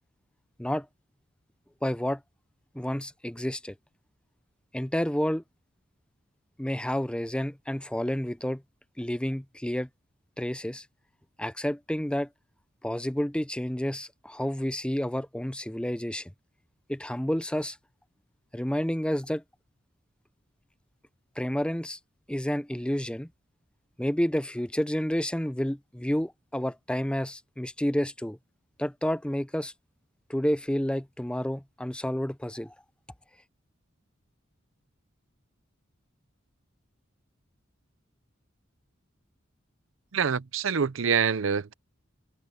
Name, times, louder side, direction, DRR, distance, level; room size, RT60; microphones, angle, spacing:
voice 1, 1.8-2.2 2.7-3.7 4.7-5.4 6.6-8.6 9.0-9.9 10.4-10.8 11.4-12.3 12.8-16.3 16.9-17.8 18.5-19.4 21.4-22.0 22.3-23.3 24.0-28.4 28.8-29.7 30.3-32.7, equal, 5° left, 0.7 m, -30 dB
voice 2, 40.1-41.7, right 6 dB, 70° right, 0.6 m, -26 dB
head